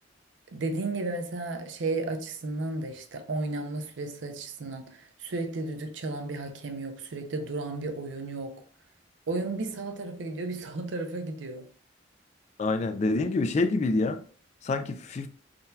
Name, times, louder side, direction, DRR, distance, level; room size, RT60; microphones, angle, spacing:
voice 1, 0.5-8.6 9.3-11.7, right 2 dB, 75° right, 0.6 m, -33 dB
voice 2, 12.6-14.2 14.6-15.3, left 3 dB, 40° left, 0.3 m, -26 dB
3.7 x 2.7 x 2.2 m
head